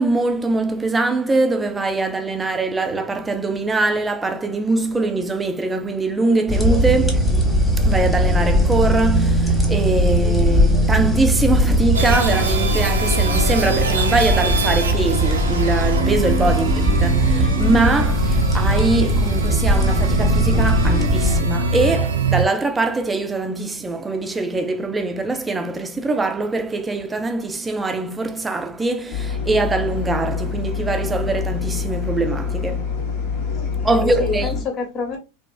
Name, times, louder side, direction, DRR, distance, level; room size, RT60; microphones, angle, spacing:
voice 1, 0.0-7.4 7.8-33.0 33.8-34.7, right 3 dB, 15° right, 0.4 m, -22 dB
sound 1, 6.5-21.4, equal, ahead, 1.0 m, -19 dB
sound 2, 11.9-22.4, right 3 dB, 85° right, 0.5 m, -23 dB
sound 3, 29.1-34.6, left 5 dB, 60° left, 0.9 m, -26 dB
voice 2, 33.5-35.2, left 4 dB, 35° left, 1.0 m, -29 dB
2.9 x 2.4 x 2.2 m
hypercardioid pair, 95°, 0 cm